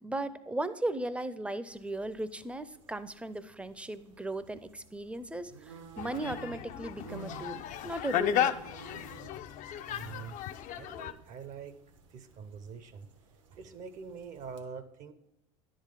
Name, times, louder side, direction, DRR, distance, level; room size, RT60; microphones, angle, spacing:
voice 1, 0.0-8.6, right 1 dB, 5° right, 13 dB, 0.4 m, -37 dB
sound 1, 1.7-14.6, right 4 dB, 85° right, 1.0 m, -53 dB
sound 2, 6.0-11.1, left 11 dB, 55° left, 0.4 m, -34 dB
voice 2, 9.9-11.8 12.1-13.1 13.5-15.1, right 6 dB, 50° right, 12 dB, 0.6 m, -45 dB
10.0 x 3.8 x 4.9 m, 0.93 s
hypercardioid pair, 80°, 16 cm